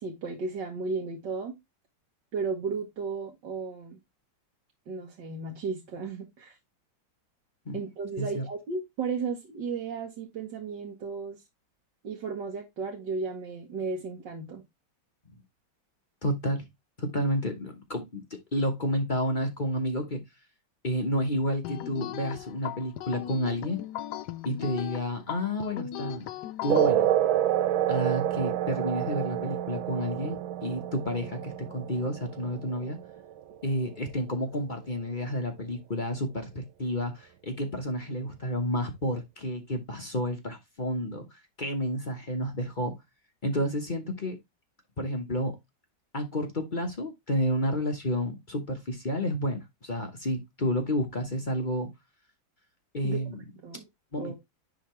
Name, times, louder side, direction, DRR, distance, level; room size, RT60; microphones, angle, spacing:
voice 1, 0.0-1.5 2.3-4.0 4.9-6.6 7.7-11.4 12.0-14.6 53.0-53.2 53.6-53.8 54.2-54.3, right 4 dB, 65° right, 1.9 m, -34 dB
voice 2, 16.2-16.6 17.0-20.2 20.8-23.8 24.4-26.3 26.6-27.1 27.9-33.0 33.6-42.9 43.4-44.4 45.0-45.5 46.1-51.9 52.9-53.4 54.1-54.3, equal, 35° left, 0.9 m, -30 dB
sound 1, 21.6-26.9, left 11 dB, 70° left, 1.0 m, -37 dB
sound 2, 26.7-33.7, right 11 dB, 85° right, 1.5 m, -28 dB
10.5 x 3.6 x 3.1 m
omnidirectional pair, 2.2 m